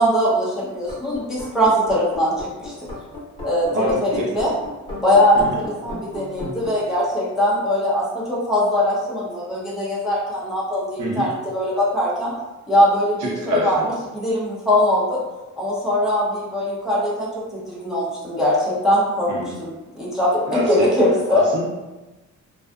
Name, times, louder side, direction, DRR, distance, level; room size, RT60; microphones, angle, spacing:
voice 1, 0.0-2.9 3.4-4.5 5.0-12.3 12.7-13.8 14.1-15.2 15.6-21.4, equal, ahead, -7 dB, 0.5 m, -21 dB
sound 1, 0.8-6.8, left 2 dB, 15° left, 0.9 m, -35 dB
voice 2, 3.7-4.3 5.3-5.6 11.0-11.3 13.2-13.9 19.3-19.5 20.5-21.6, equal, 70° right, -4 dB, 0.8 m, -25 dB
2.5 x 2.4 x 2.2 m, 1.1 s
cardioid pair, 145°, 32 cm